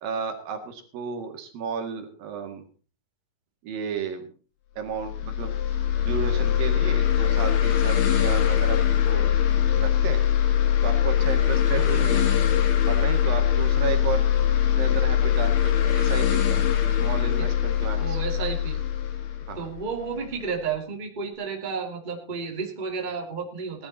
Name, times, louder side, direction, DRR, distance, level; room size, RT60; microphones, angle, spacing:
voice 1, 0.0-2.6 3.6-4.3 4.8-5.5 6.1-9.2 9.7-10.3 10.8-12.4 12.9-14.2 14.8-18.2 19.5-19.7, right 6 dB, 70° right, 6 dB, 3.6 m, -33 dB
sound 1, 4.9-20.3, left 10 dB, 65° left, 3.1 m, -22 dB
voice 2, 11.8-12.2 12.5-12.6 17.4-17.5 18.0-18.8 19.5-23.9, right 5 dB, 15° right, 2 dB, 2.0 m, -32 dB
17.5 x 12.0 x 4.1 m, 0.38 s
omnidirectional pair, 4.2 m